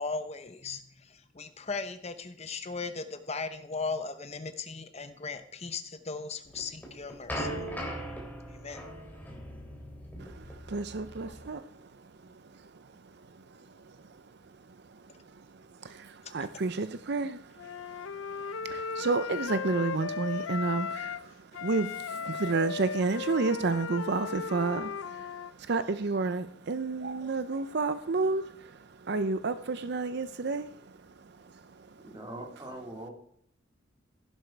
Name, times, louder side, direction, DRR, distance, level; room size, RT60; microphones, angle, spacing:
voice 1, 0.0-7.6 8.5-8.8 16.4-16.5, left 4 dB, 30° left, 9 dB, 0.8 m, -37 dB
sound 1, 6.5-11.5, equal, 10° left, 3.3 m, -39 dB
voice 2, 10.2-11.7 12.6-12.7 13.9-14.0 14.9-15.0 15.5-31.0 31.4-31.5, right 3 dB, 55° right, 12 dB, 0.6 m, -31 dB
Wind instrument woodwind instrument, 17.6-21.3 21.5-25.5, left 6 dB, 80° left, 0.5 m, -36 dB
voice 3, 32.0-33.1, right 1 dB, 20° right, 1 dB, 2.9 m, -42 dB
15.5 x 11.5 x 4.6 m, 0.65 s
head